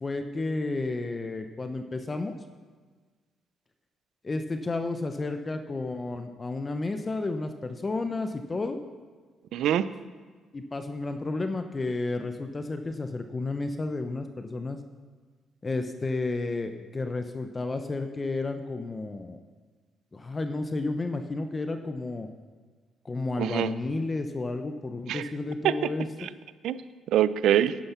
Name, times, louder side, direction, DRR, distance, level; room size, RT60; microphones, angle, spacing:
voice 1, 0.0-2.4 4.2-8.8 10.5-14.8 15.6-19.4 20.1-22.3 23.0-26.1, left 3 dB, 30° left, 7 dB, 0.7 m, -32 dB
voice 2, 9.5-9.9 23.4-23.7 25.1-25.3 25.6-25.9 26.2-26.3 26.6-26.8 27.1-27.8, right 11 dB, 80° right, 15 dB, 0.5 m, -24 dB
10.5 x 10.0 x 5.8 m, 1.4 s
cardioid pair, 90°, 0 cm